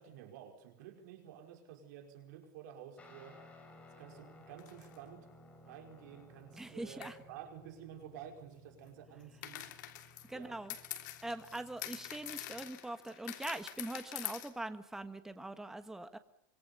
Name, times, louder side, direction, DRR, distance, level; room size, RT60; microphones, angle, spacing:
voice 1, 0.0-3.4 4.0-5.3 5.7-9.8 10.3-10.7, right 9 dB, 60° right, 5 dB, 5.0 m, -51 dB
Guitar, 3.0-12.7, left 1 dB, 10° left, 5.9 m, -59 dB
sound 1, 4.6-5.0 7.0-7.2 9.4-14.5, left 13 dB, 65° left, 3.3 m, -45 dB
voice 2, 6.6-7.1 10.3-10.7 11.2-16.2, right 2 dB, 5° right, 10 dB, 1.4 m, -42 dB
25.5 x 24.5 x 6.9 m, 0.79 s
supercardioid pair, 165°, 10 cm